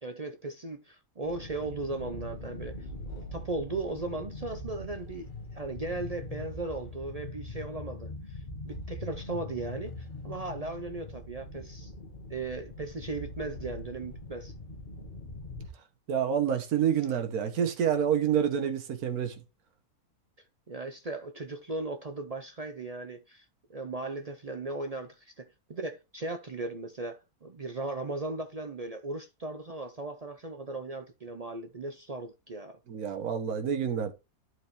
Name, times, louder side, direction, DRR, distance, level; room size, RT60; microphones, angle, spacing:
voice 1, 0.0-2.8 3.1-11.9 12.3-14.5 20.7-23.4 23.7-32.8, right 2 dB, 50° right, 0.4 m, -37 dB
sound 1, 1.2-15.7, left 2 dB, 35° left, 1.4 m, -42 dB
voice 2, 16.1-19.4 32.9-34.1, right 8 dB, 75° right, 1.5 m, -28 dB
11.0 x 4.7 x 3.2 m
omnidirectional pair, 1.6 m